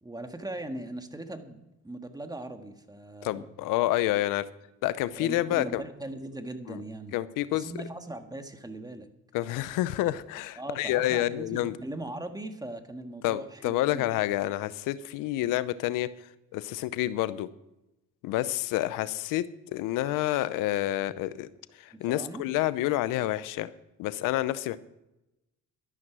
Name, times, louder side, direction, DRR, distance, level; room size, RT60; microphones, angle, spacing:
voice 1, 0.0-3.5 5.1-7.1 7.5-9.1 10.6-14.1 21.9-22.5, right 1 dB, 10° right, 7 dB, 1.6 m, -39 dB
voice 2, 3.2-4.5 4.8-5.8 6.7-6.8 7.1-7.7 9.3-11.7 13.2-16.1 16.5-17.5 18.2-21.5 21.8-23.7 24.0-24.8, left 15 dB, 85° left, 16 dB, 0.7 m, -28 dB
12.5 x 11.0 x 6.2 m, 0.93 s
supercardioid pair, 80°, 31 cm